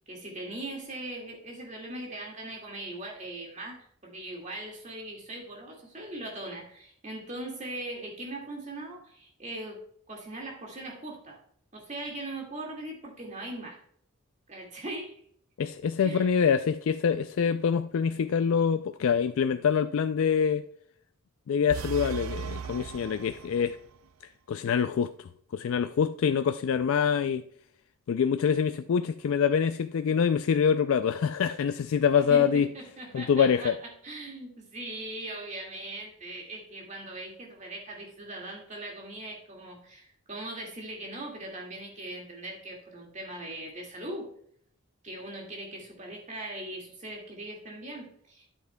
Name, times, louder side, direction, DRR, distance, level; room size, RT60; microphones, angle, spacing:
voice 1, 0.1-9.8 10.1-11.4 11.7-13.8 14.5-15.2 16.0-16.3 32.3-44.3 45.0-48.5, right 1 dB, 35° right, 2.0 m, -40 dB
voice 2, 15.6-20.6 21.5-23.8 24.5-27.4 28.1-32.7 33.1-33.8, left 7 dB, 65° left, 0.3 m, -25 dB
sound 1, 21.7-24.0, right 6 dB, 70° right, 0.4 m, -37 dB
9.4 x 8.3 x 2.2 m
head